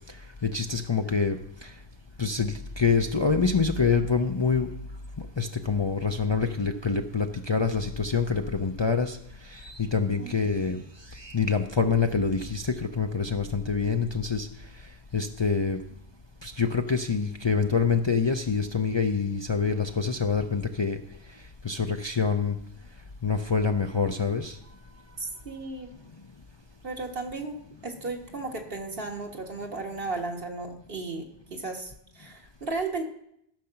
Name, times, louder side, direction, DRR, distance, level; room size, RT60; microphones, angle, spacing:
voice 1, 0.1-1.8 2.2-4.7 5.2-14.8 15.1-15.8 16.4-21.0 21.3-22.6 23.2-24.6, left 5 dB, 35° left, 4 dB, 0.5 m, -26 dB
voice 2, 25.2-25.9 26.8-27.6 27.8-33.0, right 3 dB, 65° right, 1 dB, 1.8 m, -35 dB
13.5 x 6.5 x 5.8 m, 0.75 s
omnidirectional pair, 1.0 m